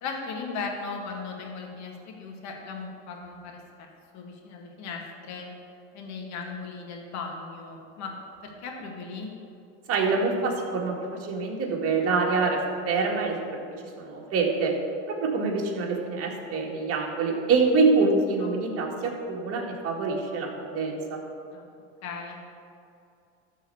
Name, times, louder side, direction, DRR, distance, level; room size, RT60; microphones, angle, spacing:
voice 1, 0.0-3.9 4.1-5.5 5.9-8.1 8.4-9.3 18.4-18.5 21.5-21.6 22.0-22.4, left 4 dB, 50° left, 1 dB, 2.1 m, -37 dB
voice 2, 9.9-12.6 12.8-13.6 14.0-14.7 15.1-21.2, right 4 dB, 40° right, -1 dB, 2.2 m, -25 dB
13.0 x 4.5 x 7.1 m, 2.5 s
supercardioid pair, 110°, 35 cm